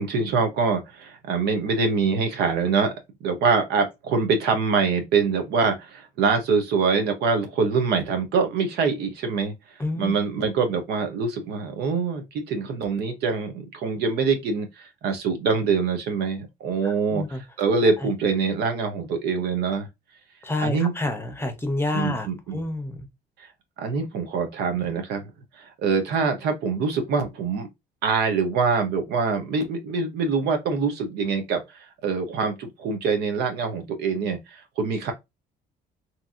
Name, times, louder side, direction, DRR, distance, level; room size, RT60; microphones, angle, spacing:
voice 1, 0.0-2.9 3.2-19.9 20.6-20.9 21.9-22.6 23.4-23.5 23.8-25.3 25.5-27.7 28.0-35.1, right 5 dB, 75° right, 0.9 m, -24 dB
voice 2, 9.8-10.1 16.8-17.4 20.4-22.3 22.5-23.1, left 2 dB, 15° left, 0.7 m, -28 dB
2.9 x 2.6 x 2.5 m
cardioid pair, 110°, 17 cm